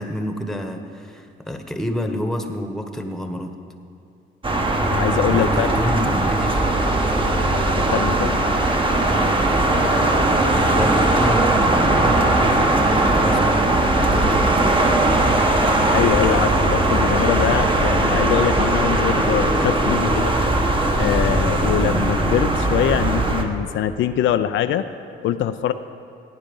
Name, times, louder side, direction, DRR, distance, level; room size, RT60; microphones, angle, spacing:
voice 1, 0.0-3.5 5.1-7.0 10.7-14.7, equal, ahead, 5 dB, 1.2 m, -28 dB
sound 1, 4.4-23.4, right 2 dB, 25° right, 1.3 m, -19 dB
voice 2, 4.9-5.8 7.8-8.4 15.9-20.3 21.0-24.9 25.2-25.7, left 11 dB, 75° left, 9 dB, 0.5 m, -23 dB
16.5 x 9.0 x 5.4 m, 2.5 s
cardioid pair, 90°, 20 cm